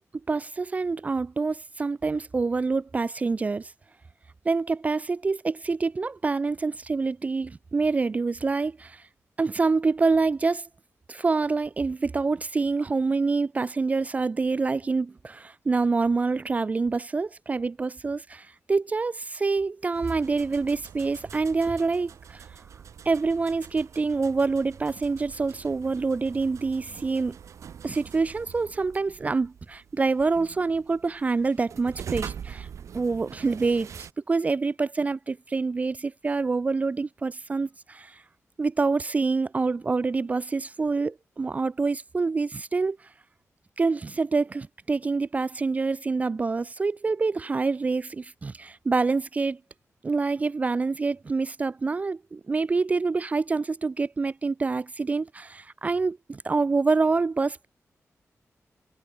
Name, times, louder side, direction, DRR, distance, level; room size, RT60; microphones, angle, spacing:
voice 1, 0.3-3.7 4.5-9.0 9.4-10.7 11.1-22.5 23.1-27.4 27.8-32.7 32.9-38.2 38.6-43.0 43.8-49.6 50.0-57.7, right 4 dB, 25° right, 0.4 m, -26 dB
sound 1, 19.9-34.1, right 8 dB, 70° right, 0.9 m, -44 dB
wide cardioid pair, 160°, 5 cm